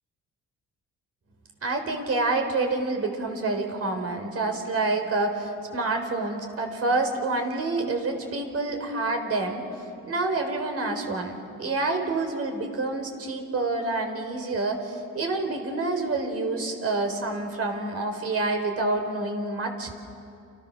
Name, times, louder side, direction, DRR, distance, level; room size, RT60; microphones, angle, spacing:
voice 1, 1.6-9.7 10.1-20.0, right 2 dB, 50° right, 4 dB, 4.5 m, -28 dB
29.5 x 27.5 x 6.7 m, 2.5 s
cardioid pair, 90°, 30 cm